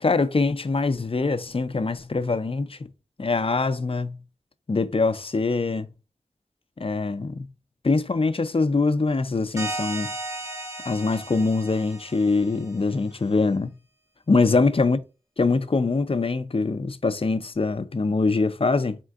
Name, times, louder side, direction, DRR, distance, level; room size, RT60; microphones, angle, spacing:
voice 1, 0.0-2.8 3.2-4.2 4.7-5.9 6.8-7.5 7.8-10.1 10.9-13.7 14.3-15.0 15.4-19.0, left 3 dB, 45° left, 0.5 m, -23 dB
sound 1, 9.6-13.0, right 2 dB, 25° right, 1.5 m, -35 dB
4.3 x 3.6 x 2.3 m
wide cardioid pair, 55°, 13 cm